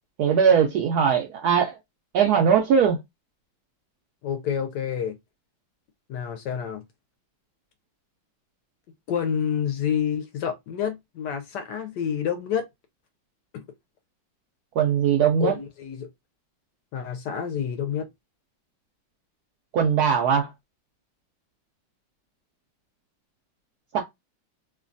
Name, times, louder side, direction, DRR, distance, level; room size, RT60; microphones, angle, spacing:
voice 1, 0.2-1.8 2.1-3.0 14.8-15.6 19.7-20.5 23.9-24.0, right 7 dB, 75° right, 0.9 m, -20 dB
voice 2, 4.2-5.2 6.1-6.8 9.1-12.7 13.5-13.6 15.4-16.1 16.9-18.1, left 8 dB, 75° left, 1.1 m, -28 dB
3.1 x 2.2 x 2.5 m
omnidirectional pair, 2.1 m